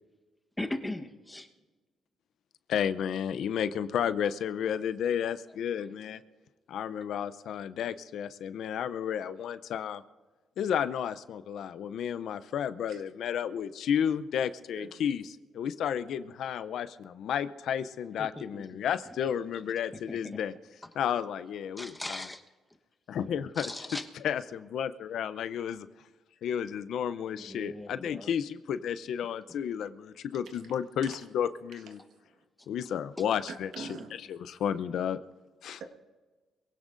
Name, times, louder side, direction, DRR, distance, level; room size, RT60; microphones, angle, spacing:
voice 1, 0.6-1.5 5.7-5.9 18.2-18.8 20.1-20.4 21.8-22.4 23.6-24.1 27.4-28.3 29.5-29.6 31.1-31.2 33.2-33.3, left 1 dB, 10° left, 5 dB, 1.2 m, -39 dB
voice 2, 2.7-6.2 6.7-10.0 10.6-20.5 21.0-22.2 23.1-23.7 24.2-25.9 26.4-32.0 32.7-33.9 34.3-35.2 35.6-35.8, left 8 dB, 70° left, 13 dB, 0.6 m, -32 dB
voice 3, 33.5-34.2, right 4 dB, 75° right, 5 dB, 1.5 m, -44 dB
22.5 x 16.5 x 2.6 m, 1.3 s
cardioid pair, 90°, 0 cm